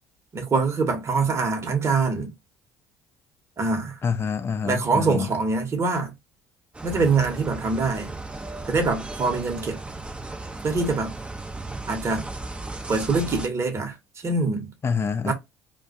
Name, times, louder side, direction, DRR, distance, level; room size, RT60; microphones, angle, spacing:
voice 1, 0.3-2.3 3.6-4.0 4.6-6.1 6.8-8.1 8.7-9.8 10.6-11.1 11.9-12.2 12.9-14.0 14.2-14.7 15.3-15.4, right 4 dB, 35° right, 1.0 m, -24 dB
voice 2, 4.0-5.3 14.8-15.3, left 6 dB, 30° left, 0.5 m, -26 dB
sound 1, 6.7-13.5, right 2 dB, 15° right, 0.6 m, -36 dB
2.2 x 2.2 x 2.6 m
hypercardioid pair, 65°, 8 cm